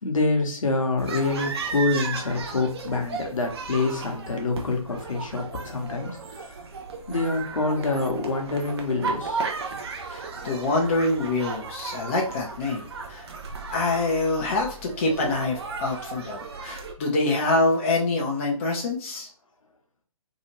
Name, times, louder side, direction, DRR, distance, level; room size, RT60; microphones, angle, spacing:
voice 1, 0.0-6.6 7.1-9.4 15.2-15.5, left 3 dB, 65° left, 3 dB, 0.8 m, -26 dB
sound 1, 1.0-16.9, right 4 dB, 45° right, 0.6 m, -35 dB
voice 2, 10.1-13.3 13.7-19.3, left 2 dB, 20° left, -1 dB, 0.4 m, -25 dB
2.8 x 2.3 x 2.9 m, 0.42 s
figure-of-eight pair, 140°, 18 cm